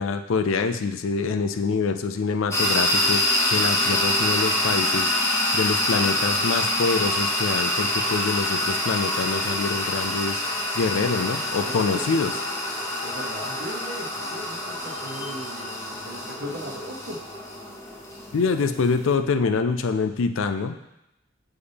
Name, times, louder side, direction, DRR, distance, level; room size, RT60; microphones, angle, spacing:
voice 1, 0.0-5.1 5.5-10.4 10.8-12.3 18.3-20.8, left 4 dB, 80° left, 9 dB, 0.4 m, -25 dB
sound 1, 2.5-19.1, left 1 dB, 15° left, 0.7 m, -26 dB
voice 2, 11.6-12.0 13.0-17.2 18.6-18.7, equal, 55° right, 0 dB, 1.0 m, -38 dB
6.9 x 4.1 x 3.4 m, 0.87 s
head